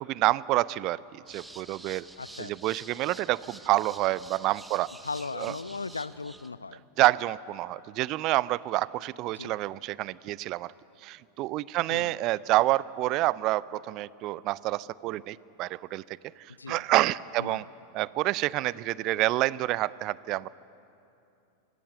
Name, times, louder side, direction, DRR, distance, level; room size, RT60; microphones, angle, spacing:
voice 1, 0.0-2.1 2.4-4.9 5.4-5.5 7.0-10.7 11.0-16.0 16.4-17.7 17.9-20.5, right 17 dB, 40° right, 21 dB, 0.5 m, -28 dB
sound 1, 1.3-6.5, right 2 dB, 5° right, 0.8 m, -48 dB
voice 2, 2.2-2.5 5.0-6.8 9.3-9.6 11.9-12.1 16.6-16.8 17.4-17.6, left 4 dB, 75° left, 18 dB, 0.5 m, -37 dB
26.0 x 18.0 x 7.8 m, 2.7 s
figure-of-eight pair, 90°, 0 cm